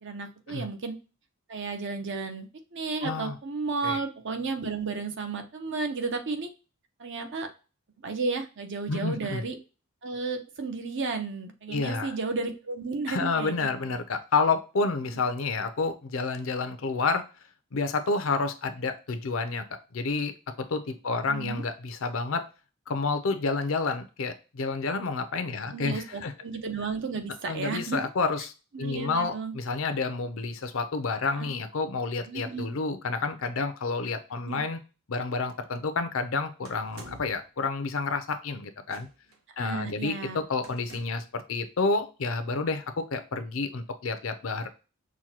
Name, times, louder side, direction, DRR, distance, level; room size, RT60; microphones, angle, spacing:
voice 1, 0.0-0.9 1.5-6.5 7.0-7.5 8.0-9.6 10.0-14.0 21.3-21.6 25.7-28.0 28.7-29.5 31.4-31.5 32.3-32.7 34.4-34.6 39.6-40.4, right 4 dB, 55° right, 6 dB, 0.7 m, -33 dB
voice 2, 3.0-3.4 3.8-4.0 8.9-9.4 11.7-12.2 13.1-17.3 17.7-19.6 19.9-20.3 20.7-22.4 22.9-26.3 27.4-34.8 35.1-39.1 39.6-44.7, left 4 dB, 70° left, 9 dB, 0.6 m, -29 dB
sound 1, 36.6-37.5 38.8-39.4 40.6-41.3, right 3 dB, 80° right, 1.1 m, -49 dB
6.1 x 2.2 x 2.8 m, 0.32 s
head